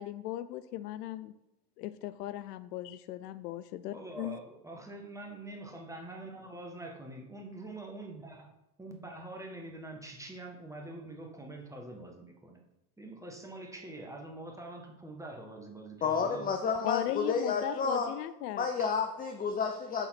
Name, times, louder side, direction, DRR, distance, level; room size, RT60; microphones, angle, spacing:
voice 1, 0.0-1.3 1.8-4.4 16.8-18.7, left 13 dB, 75° left, 14 dB, 0.6 m, -37 dB
voice 2, 3.9-8.5 8.8-12.6 13.0-16.5 18.8-18.9, right 2 dB, 5° right, 1 dB, 1.5 m, -45 dB
voice 3, 16.0-18.1 18.6-20.1, left 5 dB, 20° left, 5 dB, 0.6 m, -30 dB
7.1 x 4.1 x 5.9 m, 0.88 s
hypercardioid pair, 90°, 49 cm